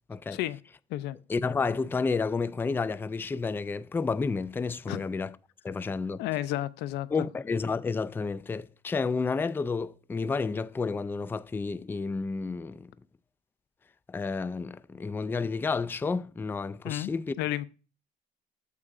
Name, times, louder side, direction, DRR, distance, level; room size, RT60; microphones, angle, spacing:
voice 1, 1.3-5.3 5.6-6.2 7.1-12.9 14.1-17.4, left 4 dB, 10° left, 0.3 m, -30 dB
voice 2, 6.2-7.1 16.8-17.1 17.4-17.7, left 14 dB, 85° left, 0.5 m, -31 dB
14.0 x 4.8 x 2.4 m
cardioid pair, 110°, 17 cm